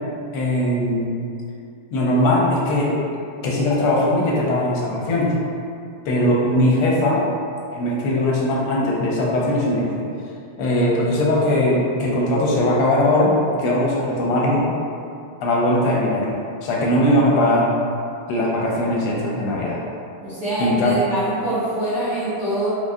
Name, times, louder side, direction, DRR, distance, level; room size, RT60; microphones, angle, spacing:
voice 1, 0.3-1.2 1.9-2.9 3.4-5.3 6.0-7.2 7.7-10.1 10.6-14.6 15.4-17.7 18.3-19.8 20.6-20.9, left 1 dB, 90° left, -4 dB, 1.5 m, -20 dB
voice 2, 20.2-22.7, right 1 dB, 50° right, -14 dB, 0.9 m, -24 dB
4.6 x 2.0 x 2.6 m, 2.4 s
omnidirectional pair, 2.4 m